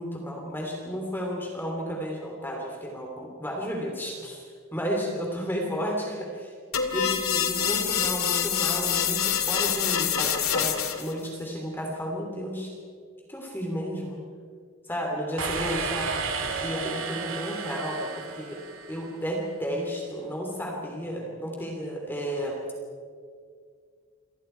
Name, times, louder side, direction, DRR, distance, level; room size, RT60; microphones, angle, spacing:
voice 1, 0.0-6.5 6.9-12.7 13.3-14.2 14.9-16.1 16.6-18.6 18.9-22.6, equal, 10° left, 0 dB, 3.2 m, -32 dB
sound 1, 6.7-11.1, left 8 dB, 90° left, 2.3 m, -26 dB
sound 2, 15.4-19.1, right 4 dB, 70° right, 3.0 m, -32 dB
28.5 x 25.0 x 4.7 m, 2.1 s
head